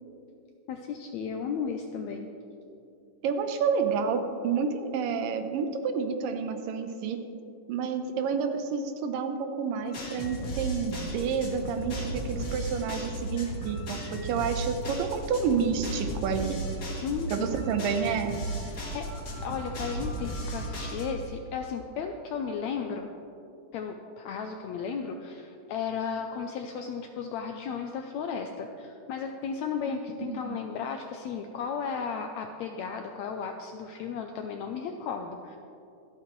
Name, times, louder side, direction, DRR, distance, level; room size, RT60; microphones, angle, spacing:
voice 1, 0.7-2.3 17.0-17.5 18.6-19.1 19.4-23.1 23.7-35.6, left 6 dB, 80° left, 5 dB, 1.6 m, -34 dB
voice 2, 3.2-7.2 7.7-16.6 17.3-18.4 29.9-30.6, right 6 dB, 90° right, 7 dB, 2.6 m, -29 dB
sound 1, 9.9-21.1, right 1 dB, 40° left, 1.6 m, -35 dB
25.0 x 8.5 x 3.1 m, 2.7 s
omnidirectional pair, 3.8 m